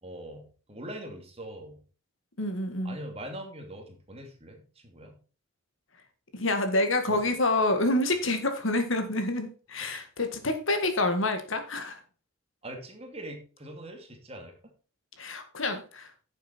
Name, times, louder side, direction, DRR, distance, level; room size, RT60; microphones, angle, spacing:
voice 1, 0.0-1.8 2.8-5.2 7.1-7.3 9.9-10.0 12.6-14.6, right 1 dB, 30° right, 3 dB, 2.5 m, -42 dB
voice 2, 2.4-3.0 6.3-12.0 15.2-16.1, left 2 dB, 65° left, 7 dB, 1.8 m, -27 dB
10.5 x 7.3 x 4.4 m, 0.37 s
head